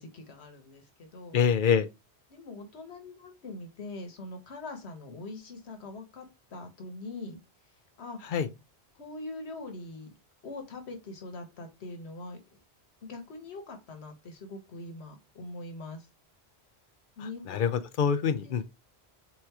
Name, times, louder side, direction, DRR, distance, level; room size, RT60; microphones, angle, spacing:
voice 1, 0.0-1.4 2.3-7.4 8.0-8.2 9.0-10.1 10.4-12.6 13.0-16.1 17.2-17.7 18.4-18.6, left 2 dB, 80° left, 1.2 m, -42 dB
voice 2, 1.3-1.9 8.3-8.5 17.5-18.6, left 7 dB, 60° left, 0.6 m, -25 dB
3.6 x 3.1 x 4.5 m
omnidirectional pair, 1.1 m